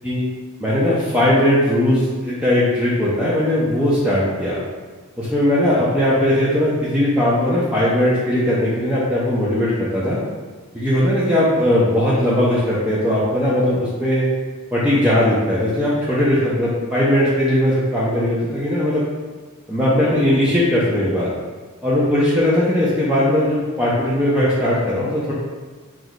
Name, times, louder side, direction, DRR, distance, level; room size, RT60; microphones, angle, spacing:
voice 1, 0.6-4.6 5.2-10.2 10.7-14.3 14.7-19.1 19.7-21.3 21.8-25.3, left 1 dB, 5° right, -9 dB, 0.4 m, -18 dB
3.0 x 2.2 x 3.8 m, 1.4 s
head